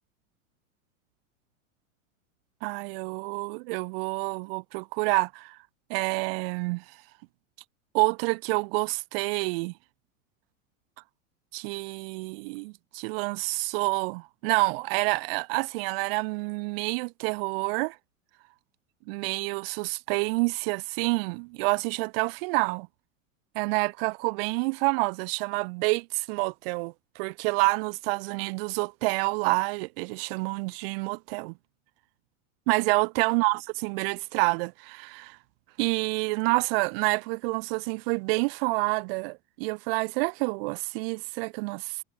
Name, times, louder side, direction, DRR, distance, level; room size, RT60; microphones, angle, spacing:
voice 1, 2.6-5.6 5.9-6.8 7.9-9.7 11.5-18.0 19.1-22.9 23.6-31.5 32.7-35.4 35.8-42.0, right 29 dB, 50° right, 0.5 m, -28 dB
hypercardioid pair, 105°, 41 cm